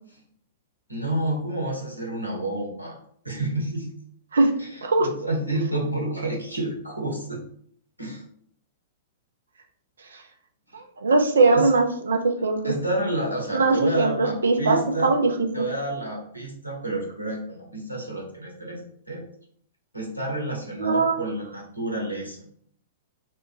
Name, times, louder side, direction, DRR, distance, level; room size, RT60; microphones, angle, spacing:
voice 1, 0.9-3.0 3.2-3.9 4.6-7.4 8.0-8.2 10.7-10.8 11.5-11.7 12.6-15.1 15.5-18.8 19.1-19.2 19.9-22.4, right 1 dB, 90° right, -2 dB, 0.9 m, -29 dB
voice 2, 10.7-12.7 13.5-15.3 20.8-21.2, right 3 dB, 70° right, 4 dB, 0.5 m, -21 dB
2.9 x 2.3 x 3.7 m, 0.62 s
figure-of-eight pair, 105°, 0 cm